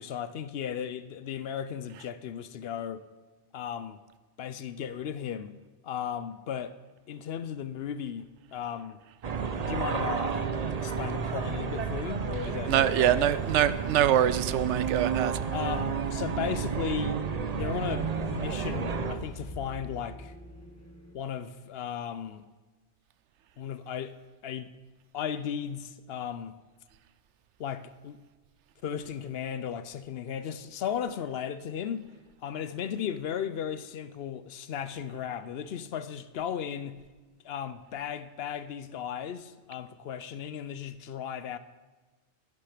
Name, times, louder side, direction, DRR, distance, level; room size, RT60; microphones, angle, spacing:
voice 1, 0.0-3.1 3.5-4.0 4.4-5.6 5.8-6.7 7.1-9.0 9.6-10.4 10.8-13.3 15.5-17.2 17.5-20.4 21.1-22.4 23.6-24.1 24.4-24.7 25.1-26.6 27.6-28.2 28.8-32.1 32.4-37.0 37.4-41.6, left 8 dB, 65° left, 0.8 m, -35 dB
sound 1, 9.2-19.2, right 6 dB, 40° right, 0.7 m, -31 dB
voice 2, 12.7-15.4, right 11 dB, 90° right, 0.9 m, -24 dB
sound 2, 17.5-21.1, equal, 15° left, 1.4 m, -47 dB
12.0 x 11.5 x 5.0 m
omnidirectional pair, 1.2 m